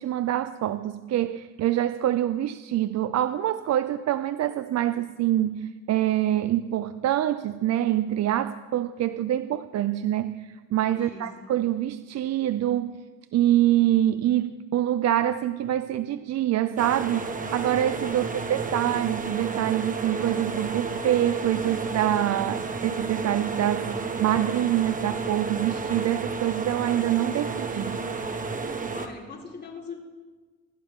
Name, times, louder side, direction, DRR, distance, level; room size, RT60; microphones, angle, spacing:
voice 1, 0.0-13.0 13.3-28.1, right 12 dB, 55° right, 12 dB, 0.6 m, -25 dB
voice 2, 10.9-11.5 28.9-29.9, left 4 dB, 30° left, -1 dB, 4.0 m, -41 dB
sound 1, 16.8-29.1, right 4 dB, 25° right, 1.4 m, -31 dB
26.5 x 12.5 x 3.7 m, 1.4 s
cardioid pair, 105°, 33 cm